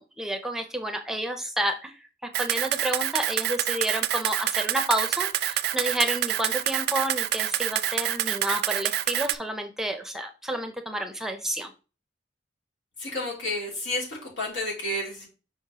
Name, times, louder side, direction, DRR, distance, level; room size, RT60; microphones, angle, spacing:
voice 1, 0.0-1.9 2.4-11.7, right 1 dB, ahead, 6 dB, 0.5 m, -30 dB
Camera, 2.3-9.4, right 12 dB, 55° right, 0.3 m, -27 dB
voice 2, 13.0-15.3, left 1 dB, 85° left, -3 dB, 3.0 m, -31 dB
6.4 x 5.1 x 2.9 m, 0.32 s
head